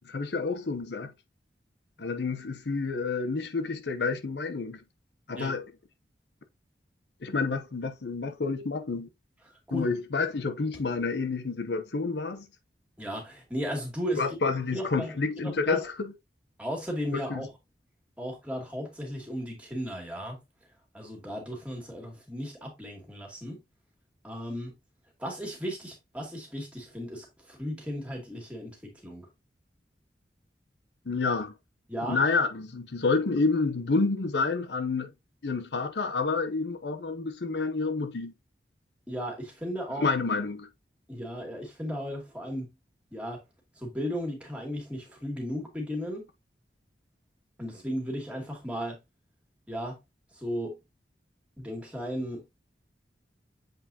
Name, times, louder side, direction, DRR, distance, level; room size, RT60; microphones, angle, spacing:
voice 1, 0.0-1.1 2.0-4.8 5.3-5.6 7.2-9.1 9.7-12.5 14.2-16.1 17.3-17.4 31.1-31.5 32.1-35.1 35.4-38.3 40.0-40.7, left 4 dB, 75° left, 0.8 m, -29 dB
voice 2, 9.5-9.9 13.0-14.4 14.7-15.1 15.4-15.8 16.6-17.5 18.2-20.4 20.9-23.6 24.2-24.7 25.2-29.3 31.9-32.2 39.1-40.1 41.1-42.7 43.1-43.4 43.7-46.3 47.6-49.0 49.7-50.0 50.3-50.8 51.6-52.4, equal, 5° right, 2.4 m, -35 dB
7.6 x 4.7 x 2.8 m
head